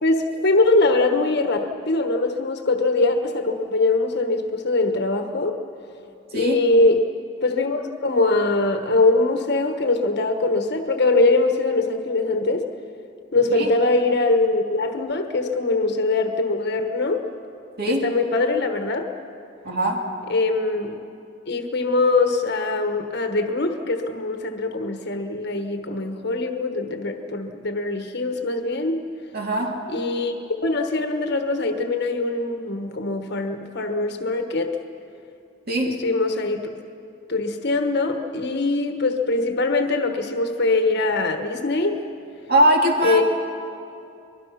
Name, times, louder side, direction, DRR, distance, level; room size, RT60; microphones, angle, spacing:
voice 1, 0.0-5.6 6.3-7.0 7.4-12.7 13.3-17.3 17.9-19.0 20.3-21.0 21.5-29.1 29.9-30.3 30.6-34.8 35.8-36.7 37.3-42.0 43.0-43.2, left 2 dB, 60° left, 6 dB, 1.4 m, -22 dB
voice 2, 17.8-18.1 19.6-20.1 29.3-29.8 35.7-36.0 42.5-43.2, right 1 dB, 55° right, 0 dB, 2.3 m, -21 dB
24.0 x 21.0 x 5.9 m, 2.6 s
head